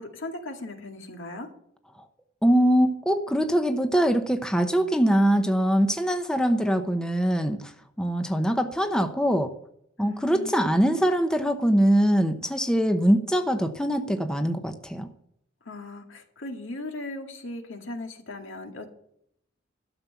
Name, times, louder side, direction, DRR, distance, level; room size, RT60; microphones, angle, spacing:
voice 1, 0.0-1.5 10.0-10.7 15.7-18.9, left 2 dB, 75° left, 4 dB, 2.0 m, -38 dB
voice 2, 2.4-7.7 8.0-9.5 10.0-15.1, equal, 5° left, 7 dB, 0.7 m, -23 dB
13.0 x 7.2 x 7.1 m, 0.71 s
head